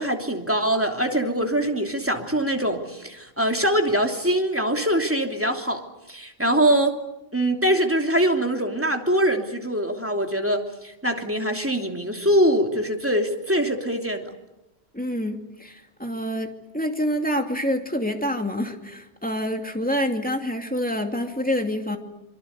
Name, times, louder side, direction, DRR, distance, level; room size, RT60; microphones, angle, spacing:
voice 1, 0.0-5.8 6.1-6.9 7.3-14.3, right 1 dB, 10° right, 3 dB, 3.0 m, -23 dB
voice 2, 14.9-22.0, equal, 10° left, 4 dB, 2.5 m, -27 dB
26.0 x 23.5 x 8.2 m, 0.90 s
omnidirectional pair, 1.1 m